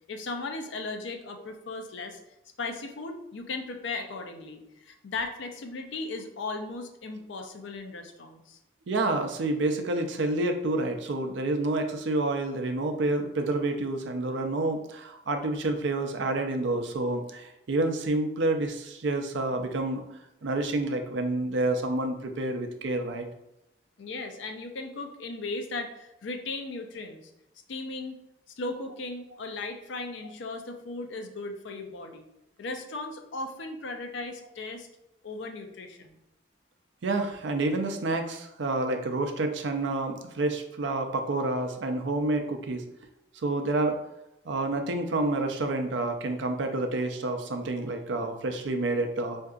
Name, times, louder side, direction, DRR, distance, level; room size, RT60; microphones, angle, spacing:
voice 1, 0.1-2.2 2.6-8.6 24.0-27.2 27.7-28.2 28.6-32.2 32.6-34.9 35.2-36.2, left 3 dB, 80° left, 5 dB, 0.5 m, -37 dB
voice 2, 8.9-20.0 20.4-23.3 37.0-42.8 43.4-44.0 44.5-49.4, right 2 dB, 80° right, 5 dB, 0.5 m, -28 dB
4.5 x 2.6 x 2.4 m, 0.87 s
head